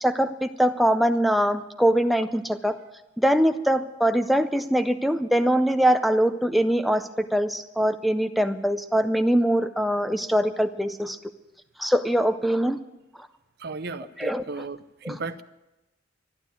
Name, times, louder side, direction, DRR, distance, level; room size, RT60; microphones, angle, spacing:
voice 1, 0.0-2.8 3.2-11.2 11.8-12.8 14.2-14.7 15.0-15.2, equal, ahead, 7 dB, 0.4 m, -23 dB
voice 2, 13.6-14.8 15.1-15.4, right 3 dB, 55° right, 13 dB, 0.7 m, -34 dB
12.0 x 11.5 x 8.9 m, 0.98 s
head